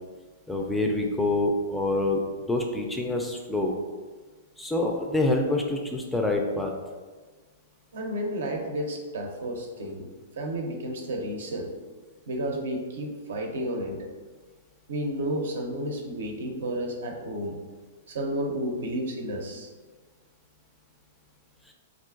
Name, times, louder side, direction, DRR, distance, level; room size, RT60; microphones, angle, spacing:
voice 1, 0.5-2.2 2.5-3.7 4.6-6.7, left 2 dB, 5° left, 1 dB, 0.4 m, -26 dB
voice 2, 7.9-10.1 10.4-11.7 12.3-14.0 14.9-17.6 18.1-19.7, right 1 dB, 70° right, 2 dB, 0.5 m, -31 dB
3.7 x 2.4 x 2.4 m, 1.4 s
hypercardioid pair, 115°, 0 cm